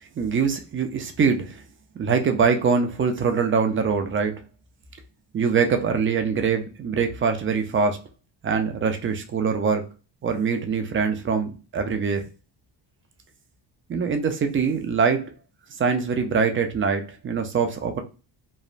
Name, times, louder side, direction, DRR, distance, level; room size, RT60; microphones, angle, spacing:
voice 1, 0.2-1.6 2.0-4.3 5.3-8.0 8.4-9.8 10.2-12.2 13.9-15.3 15.8-18.0, right 5 dB, 30° right, 6 dB, 0.3 m, -23 dB
3.1 x 2.0 x 2.4 m, 0.33 s
cardioid pair, 110°, 48 cm